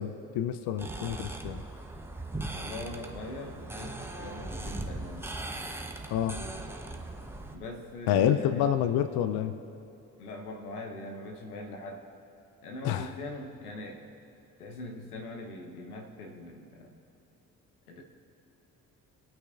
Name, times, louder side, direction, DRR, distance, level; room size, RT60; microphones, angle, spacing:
voice 1, 0.0-1.6 6.1-6.4 8.1-9.5 12.8-13.1, left 10 dB, 60° left, 11 dB, 0.6 m, -28 dB
sound 1, 0.8-7.6, right 2 dB, 5° right, 0.9 m, -39 dB
voice 2, 2.5-5.3 7.5-8.7 10.2-12.0 12.6-14.0 14.6-17.0 17.9-18.0, left 2 dB, 85° left, 3 dB, 1.0 m, -42 dB
23.0 x 8.7 x 2.5 m, 2.9 s
hypercardioid pair, 45°, 44 cm